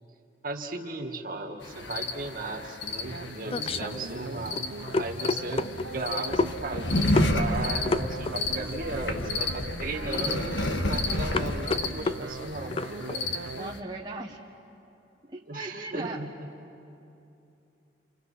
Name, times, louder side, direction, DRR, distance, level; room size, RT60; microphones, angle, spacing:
voice 1, 0.4-4.6 5.0-13.2 15.5-16.5, right 2 dB, 50° right, 2 dB, 2.1 m, -36 dB
sound 1, 1.6-13.8, left 2 dB, 80° left, 1.6 m, -31 dB
sound 2, 2.8-13.2, left 3 dB, 30° left, 0.5 m, -32 dB
sound 3, 3.0-13.7, right 3 dB, 90° right, 0.8 m, -40 dB
voice 2, 13.6-14.4 15.3-16.3, right 2 dB, 20° right, -2 dB, 1.1 m, -38 dB
30.0 x 28.5 x 5.8 m, 2.8 s
head